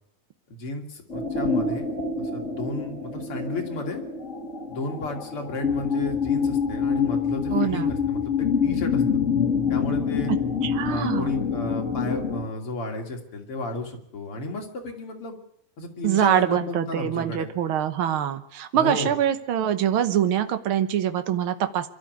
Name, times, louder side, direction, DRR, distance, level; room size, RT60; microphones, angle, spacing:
voice 1, 0.5-4.0 4.7-9.0 9.7-10.3 10.9-15.3 15.8-17.5 18.7-19.1, left 2 dB, 45° left, 2 dB, 3.3 m, -33 dB
sound 1, 1.1-12.5, left 6 dB, 25° left, 1.9 m, -26 dB
voice 2, 7.5-7.9 10.6-11.3 16.0-21.9, right 10 dB, 65° right, 9 dB, 1.3 m, -24 dB
24.0 x 12.5 x 9.4 m, 0.74 s
omnidirectional pair, 3.8 m